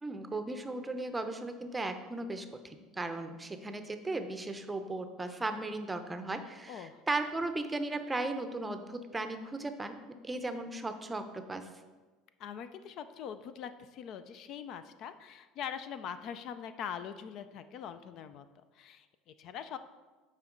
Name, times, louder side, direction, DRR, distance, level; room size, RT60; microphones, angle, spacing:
voice 1, 0.0-10.0 10.2-11.7, right 2 dB, 15° right, 8 dB, 0.6 m, -36 dB
voice 2, 6.7-7.0 12.4-18.5 18.7-19.8, left 8 dB, 55° left, 11 dB, 0.4 m, -43 dB
9.0 x 4.4 x 3.8 m, 1.3 s
supercardioid pair, 110°, 0 cm